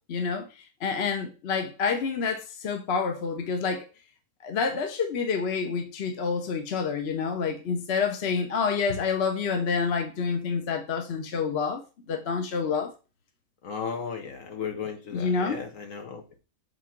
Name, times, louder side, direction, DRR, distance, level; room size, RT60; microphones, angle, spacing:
voice 1, 0.1-0.5 0.8-3.9 4.4-11.8 12.1-12.9 15.1-15.6, left 5 dB, 50° left, 1.1 m, -28 dB
voice 2, 13.6-16.4, left 6 dB, 65° left, 1.5 m, -35 dB
5.2 x 3.7 x 5.8 m
omnidirectional pair, 1.5 m